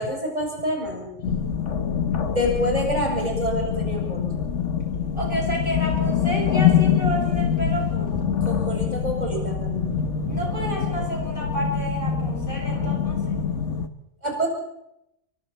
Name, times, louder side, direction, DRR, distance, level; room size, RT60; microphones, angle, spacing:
voice 1, 0.0-1.4 2.3-4.3 8.4-10.4 14.2-14.5, equal, 35° right, 0 dB, 7.9 m, -27 dB
sound 1, 1.2-13.9, left 7 dB, 65° left, 1.5 m, -24 dB
voice 2, 5.1-8.3 10.3-13.4, right 1 dB, 40° left, 1 dB, 5.9 m, -31 dB
29.5 x 24.5 x 4.4 m, 0.82 s
omnidirectional pair, 1.3 m